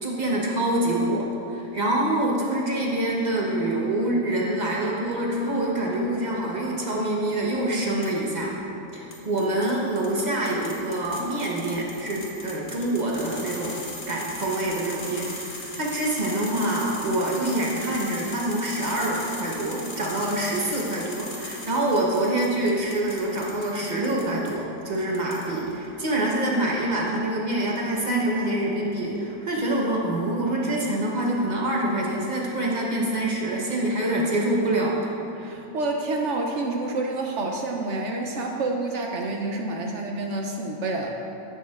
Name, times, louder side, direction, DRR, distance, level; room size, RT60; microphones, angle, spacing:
voice 1, 0.0-8.6 8.9-13.8 14.1-35.1, right 1 dB, 35° right, -3 dB, 0.8 m, -26 dB
sound 1, 8.0-8.4 9.1-24.5 24.9-25.7, left 2 dB, 40° left, 1.0 m, -39 dB
voice 2, 35.4-41.1, right 2 dB, 65° right, 1 dB, 0.7 m, -28 dB
9.9 x 7.1 x 2.4 m, 2.9 s
omnidirectional pair, 1.6 m